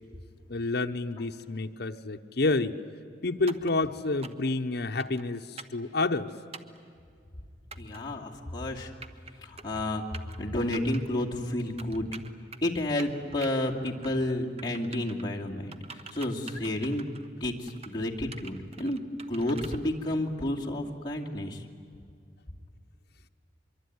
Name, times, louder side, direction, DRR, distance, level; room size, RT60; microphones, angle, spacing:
voice 1, 0.5-2.8 3.2-6.3, left 3 dB, 65° left, 4 dB, 0.9 m, -29 dB
sound 1, 3.5-3.7 4.2-4.5 5.0-5.2 5.6-5.8 6.5-6.8 7.7-8.0 8.8-9.3 9.6-9.8 10.1-10.4 10.7-11.0 11.8-12.7 13.0-13.5 13.8-14.3 14.6-15.2 15.7-17.3 17.7-17.9 18.3-19.8, right 4 dB, 35° right, 1.1 m, -45 dB
voice 2, 7.8-8.9 9.4-10.0 10.4-12.1 12.6-17.1 17.4-19.0 19.3-21.6, left 1 dB, 25° left, -3 dB, 2.5 m, -31 dB
24.0 x 23.5 x 9.5 m, 2.3 s
head